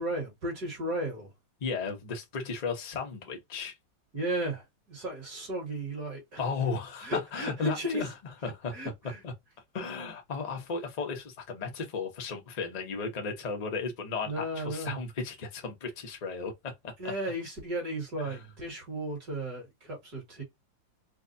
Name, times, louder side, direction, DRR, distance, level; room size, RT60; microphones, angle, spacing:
voice 1, 0.0-1.3 4.1-6.4 7.0-8.0 8.7-9.2 14.3-15.0 17.0-20.4, right 1 dB, 55° right, 2.6 m, -34 dB
voice 2, 1.6-3.8 6.4-8.1 8.4-8.7 9.2-9.3 9.7-16.9 18.2-18.4, left 4 dB, 50° left, 0.4 m, -35 dB
4.6 x 2.2 x 2.7 m
omnidirectional pair, 2.1 m